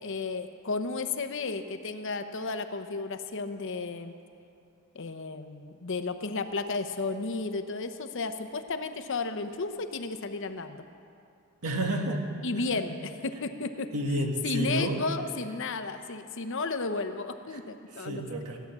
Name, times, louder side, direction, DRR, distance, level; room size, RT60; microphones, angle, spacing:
voice 1, 0.0-4.1 4.9-10.8 12.4-13.0 13.2-13.9 14.4-18.3, left 3 dB, 55° left, 9 dB, 0.8 m, -33 dB
voice 2, 11.6-12.2 12.8-12.9 13.9-15.0 18.0-18.6, right 1 dB, 80° right, 2 dB, 1.8 m, -30 dB
16.0 x 10.0 x 7.3 m, 2.6 s
head